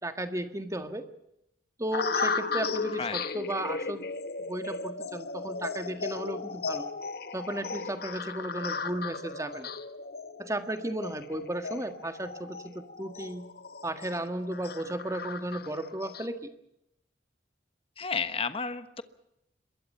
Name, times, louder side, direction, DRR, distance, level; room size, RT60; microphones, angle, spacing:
voice 1, 0.0-1.1 1.8-4.1 4.5-6.9 7.3-9.7 10.4-13.5 13.8-16.5, right 1 dB, 15° right, 8 dB, 1.7 m, -34 dB
sound 1, 1.9-16.3, left 4 dB, 55° left, 1.1 m, -36 dB
voice 2, 3.0-3.3 18.0-19.0, left 5 dB, 30° left, 11 dB, 1.2 m, -32 dB
26.5 x 22.5 x 5.6 m, 0.82 s
head